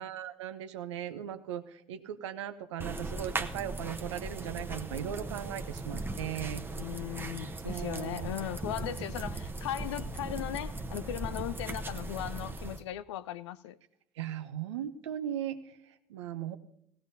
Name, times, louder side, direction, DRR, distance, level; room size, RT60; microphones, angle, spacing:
voice 1, 0.0-6.6 7.6-8.3 14.2-16.6, right 10 dB, 80° right, 0.8 m, -38 dB
sound 1, 2.8-12.8, right 2 dB, 15° right, 0.9 m, -38 dB
voice 2, 6.8-13.8, left 12 dB, 80° left, 0.5 m, -38 dB
18.0 x 15.5 x 2.7 m
hypercardioid pair, 65°, 15 cm